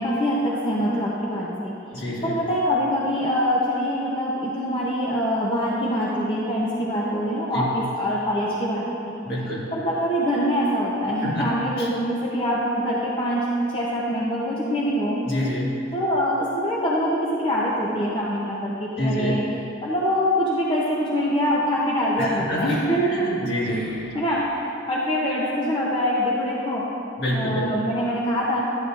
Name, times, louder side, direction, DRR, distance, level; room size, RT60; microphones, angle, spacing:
voice 1, 0.0-1.7 2.2-9.2 9.7-15.2 15.9-19.4 19.8-28.6, equal, 30° left, -6 dB, 0.7 m, -24 dB
voice 2, 1.9-2.4 7.5-7.7 9.2-9.7 11.2-11.9 15.2-15.8 19.0-19.3 22.2-22.8 23.0-24.1 27.2-27.8, equal, 55° left, -6 dB, 1.9 m, -27 dB
11.5 x 8.7 x 2.5 m, 2.9 s
head